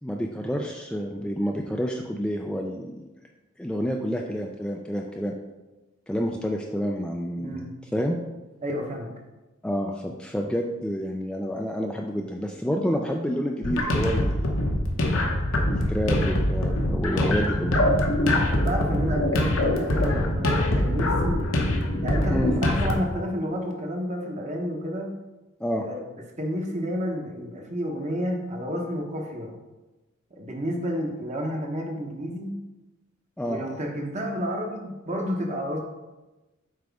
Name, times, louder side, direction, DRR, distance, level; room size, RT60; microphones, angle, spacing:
voice 1, 0.0-3.1 3.6-5.3 6.1-7.6 7.9-8.2 9.6-14.7 15.6-17.8 22.3-22.5 25.6-25.8 33.4-33.6, equal, 5° left, 0 dB, 0.3 m, -29 dB
voice 2, 7.3-7.7 8.6-9.1 18.5-21.5 22.0-25.1 25.9-26.0 26.4-29.6 30.3-32.6 33.5-35.8, equal, 35° right, 2 dB, 1.0 m, -30 dB
sound 1, 13.6-22.9, left 1 dB, 70° left, 1.0 m, -23 dB
7.7 x 4.9 x 3.5 m, 1.1 s
head